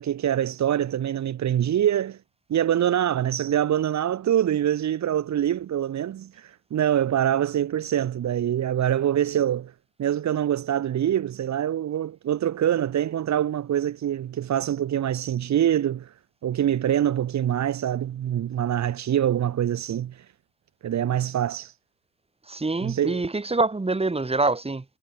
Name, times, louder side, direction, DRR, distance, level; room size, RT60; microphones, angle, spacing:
voice 1, 0.0-2.2 2.5-9.7 10.0-16.1 16.4-20.2 20.8-21.7 22.8-23.2, right 10 dB, 65° right, 3.5 m, -24 dB
voice 2, 22.5-24.8, right 3 dB, 20° right, 6.9 m, -25 dB
cardioid pair, 90°, 30 cm